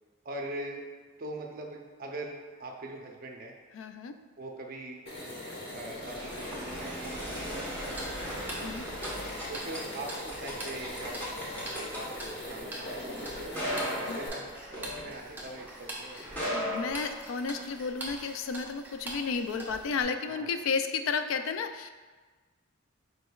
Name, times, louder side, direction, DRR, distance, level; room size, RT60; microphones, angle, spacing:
voice 1, 0.2-0.9 1.2-3.5 4.4-5.0 5.7-8.4 9.5-13.6 14.0-16.2 20.3-20.5, right 2 dB, 45° right, 1 dB, 0.6 m, -42 dB
voice 2, 3.7-4.2 8.6-8.9 14.1-14.2 16.2-16.3 16.5-21.9, left 5 dB, 75° left, 8 dB, 0.3 m, -32 dB
sound 1, 5.1-14.3, left 1 dB, 55° left, 1.2 m, -41 dB
sound 2, 5.3-15.6 16.2-17.7, equal, 10° left, 1.0 m, -38 dB
Tick-tock, 7.8-20.0, right 1 dB, 10° right, 0.7 m, -44 dB
5.0 x 4.6 x 2.3 m, 1.4 s
head